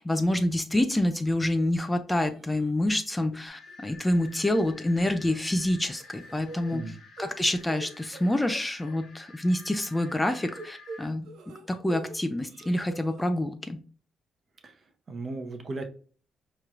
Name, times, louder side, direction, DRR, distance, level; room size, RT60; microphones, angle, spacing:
voice 1, 0.0-6.8 7.2-11.3 11.7-13.8, left 1 dB, 10° left, 8 dB, 0.4 m, -27 dB
sound 1, 2.3-2.7 3.1-3.4 3.7-3.8 4.9-5.6 5.9-9.0 10.1-12.2 12.4-13.2, right 2 dB, 85° right, 0.7 m, -45 dB
sound 2, 3.5-11.1, left 3 dB, 55° left, 0.9 m, -50 dB
voice 2, 15.1-15.9, right 3 dB, 45° right, 6 dB, 0.7 m, -36 dB
4.4 x 3.0 x 2.5 m, 0.41 s
cardioid pair, 90°, 0 cm